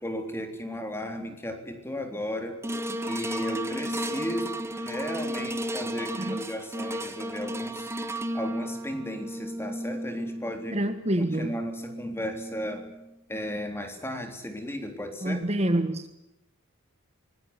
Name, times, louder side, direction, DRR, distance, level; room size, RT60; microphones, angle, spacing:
voice 1, 0.0-2.6 3.1-7.9 8.3-10.8 11.3-12.9 13.3-15.4, equal, 10° left, 5 dB, 3.6 m, -35 dB
sound 1, 2.6-13.0 13.6-13.7, equal, 10° right, 1.5 m, -34 dB
voice 2, 10.7-11.6 15.2-16.1, right 1 dB, 30° right, 9 dB, 1.4 m, -27 dB
25.0 x 20.0 x 9.7 m, 0.90 s
head